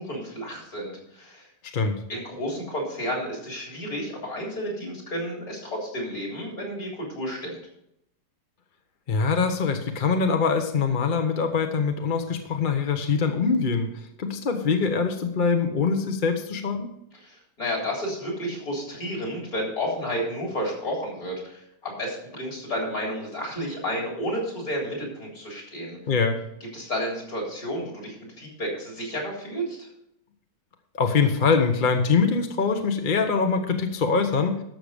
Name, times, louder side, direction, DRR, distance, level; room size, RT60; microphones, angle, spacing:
voice 1, 0.0-1.4 2.1-7.6 17.2-26.0 26.7-29.8, equal, 55° left, -2 dB, 4.2 m, -31 dB
voice 2, 9.1-13.9 14.2-16.9 26.1-26.4 30.9-34.6, left 5 dB, 40° left, 5 dB, 0.8 m, -23 dB
12.5 x 6.8 x 5.0 m, 0.77 s
omnidirectional pair, 1.8 m